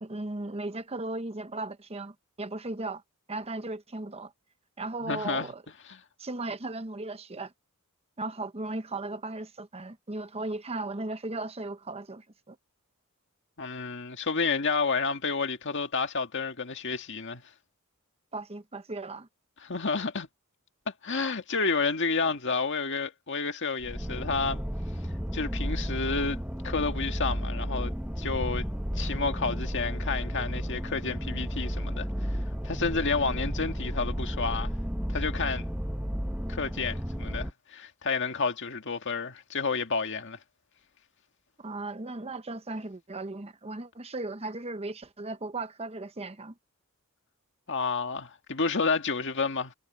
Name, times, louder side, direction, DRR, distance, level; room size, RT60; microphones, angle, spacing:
voice 1, 0.0-3.0 3.3-4.3 4.8-5.6 6.2-7.5 8.2-12.6 18.3-19.3 41.6-46.5, right 2 dB, 30° right, 1.0 m, -36 dB
voice 2, 5.0-5.5 5.9-6.0 13.6-17.4 19.6-20.3 21.0-24.6 25.3-28.7 29.0-32.1 32.6-34.7 35.1-35.7 36.5-40.4 47.7-49.7, left 4 dB, 55° left, 1.8 m, -30 dB
sound 1, 23.8-37.5, equal, 5° right, 1.5 m, -32 dB
head